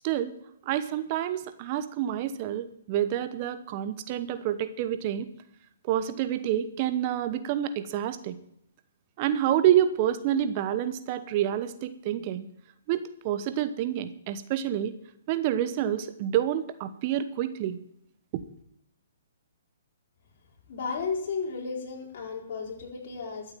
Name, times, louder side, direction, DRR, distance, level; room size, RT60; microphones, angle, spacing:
voice 1, 0.0-0.4 0.7-5.3 5.9-8.4 9.2-12.5 12.9-14.9 15.3-17.8, right 11 dB, 40° right, 12 dB, 0.9 m, -28 dB
voice 2, 20.7-23.5, left 5 dB, 55° left, 0 dB, 4.6 m, -33 dB
13.5 x 7.9 x 9.0 m, 0.75 s
hypercardioid pair, 130°, 0 cm